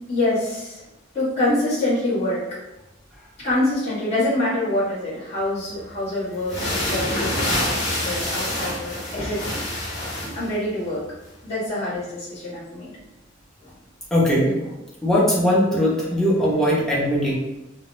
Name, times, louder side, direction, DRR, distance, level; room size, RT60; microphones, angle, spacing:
voice 1, 0.1-0.8 1.1-2.4 3.4-9.6 10.3-11.0 11.4-12.9, left 1 dB, 35° left, -12 dB, 1.2 m, -25 dB
sound 1, 5.8-5.9 6.4-10.5, left 1 dB, 65° left, 1.3 m, -26 dB
voice 2, 14.1-17.3, equal, ahead, -5 dB, 0.7 m, -20 dB
3.8 x 2.2 x 2.6 m, 0.95 s
head